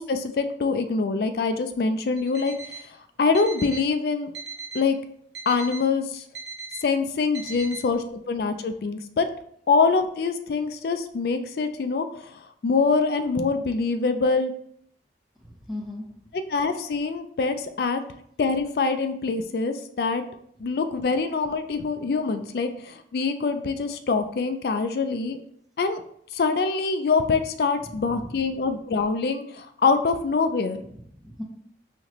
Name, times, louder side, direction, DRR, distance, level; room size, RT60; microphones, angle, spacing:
voice 1, 0.0-2.5 3.2-4.3 4.7-5.0 5.5-6.2 6.8-9.3 9.7-14.5 16.5-18.0 18.4-20.2 20.6-25.4 25.8-26.0 26.3-30.8, left 4 dB, 60° left, 9 dB, 0.3 m, -24 dB
Alarm, 2.2-2.9 3.3-3.9 4.3-4.9 5.3-5.9 6.3-6.8 7.3-7.8, right 4 dB, 80° right, 0.7 m, -38 dB
voice 2, 15.4-16.0 27.8-28.4 30.8-31.4, left 1 dB, ahead, -2 dB, 0.6 m, -38 dB
4.1 x 2.9 x 2.9 m, 0.68 s
head